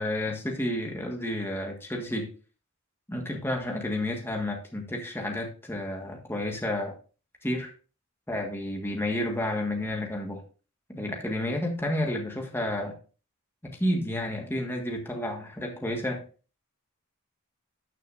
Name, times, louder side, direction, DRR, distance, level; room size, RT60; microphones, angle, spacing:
voice 1, 0.0-2.3 3.1-6.9 7.4-7.7 8.3-10.4 10.9-12.9 13.6-16.2, left 1 dB, 10° left, 1 dB, 1.6 m, -31 dB
13.0 x 6.5 x 2.6 m, 0.36 s
head